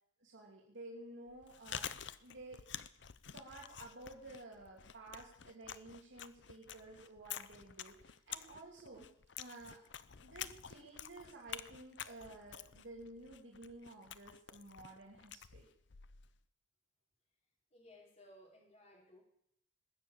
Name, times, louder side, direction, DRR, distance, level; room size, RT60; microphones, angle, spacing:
voice 1, 0.2-1.9 2.2-2.6 3.3-9.1 9.4-9.8 10.2-15.7, right 2 dB, 75° right, -2 dB, 2.6 m, -53 dB
Chewing mastication, 1.3-16.4, left 9 dB, 65° left, 0.7 m, -49 dB
voice 2, 17.7-19.2, left 1 dB, 35° left, -1 dB, 4.5 m, -60 dB
20.0 x 7.3 x 8.7 m, 0.75 s
head